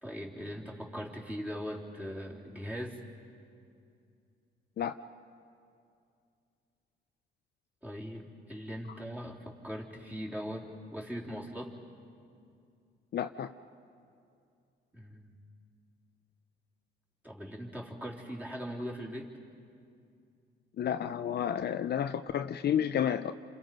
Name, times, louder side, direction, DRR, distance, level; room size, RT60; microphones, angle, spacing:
voice 1, 0.0-3.0 7.8-11.7 14.9-15.3 17.2-19.3, equal, 10° right, -3 dB, 3.6 m, -40 dB
voice 2, 13.1-13.5 20.8-23.3, left 9 dB, 55° left, 9 dB, 0.6 m, -31 dB
29.0 x 27.0 x 5.4 m, 2.5 s
cardioid pair, 90°, 20 cm